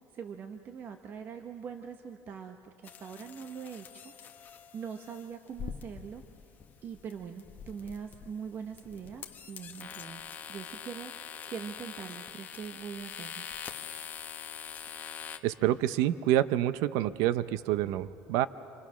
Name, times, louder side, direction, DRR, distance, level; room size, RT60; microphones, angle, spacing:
voice 1, 0.1-4.1 4.7-6.2 6.8-10.2 10.5-11.1 11.5-13.4, right 7 dB, 35° right, 6 dB, 1.0 m, -42 dB
sound 1, 2.8-15.4, left 7 dB, 35° left, 1.3 m, -44 dB
voice 2, 15.4-18.5, right 13 dB, 75° right, 15 dB, 0.7 m, -27 dB
28.0 x 25.0 x 6.3 m, 2.6 s
cardioid pair, 140°, 6 cm